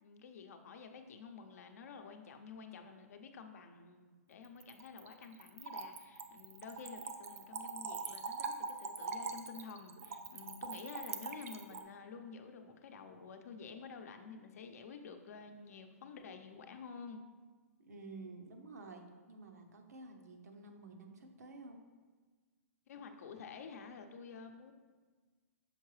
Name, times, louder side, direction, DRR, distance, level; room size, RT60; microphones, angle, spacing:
voice 1, 0.0-17.2 22.9-24.7, left 5 dB, 70° left, 6 dB, 0.6 m, -50 dB
Splash splatter / Trickle dribble, 4.4-11.8, right 4 dB, 60° right, 0.5 m, -43 dB
voice 2, 17.8-21.8, right 3 dB, 85° right, 4 dB, 0.9 m, -51 dB
6.5 x 4.6 x 3.2 m, 1.4 s
hypercardioid pair, 145°, 9 cm